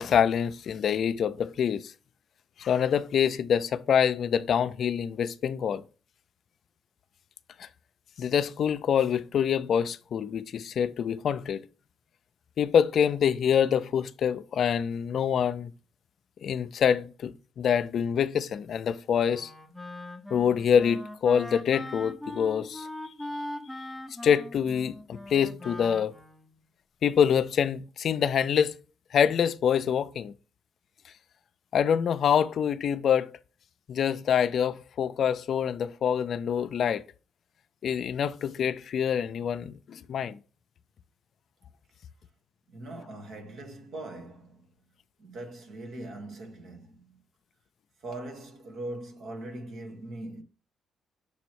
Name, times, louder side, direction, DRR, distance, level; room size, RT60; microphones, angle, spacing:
voice 1, 0.0-1.9 2.6-5.8 7.6-7.7 8.2-11.6 12.6-15.7 16.4-19.5 20.3-22.9 23.3-23.4 24.2-26.1 27.0-28.8 29.1-30.3 31.7-33.4 33.9-37.0 37.8-40.4, left 8 dB, 60° left, 0.4 m, -26 dB
Wind instrument woodwind instrument, 19.3-26.6, left 1 dB, ahead, 0.7 m, -40 dB
voice 2, 42.7-44.6 45.2-47.2 48.0-50.4, right 1 dB, 70° right, 1.5 m, -41 dB
6.9 x 3.1 x 4.6 m
cardioid pair, 90°, 0 cm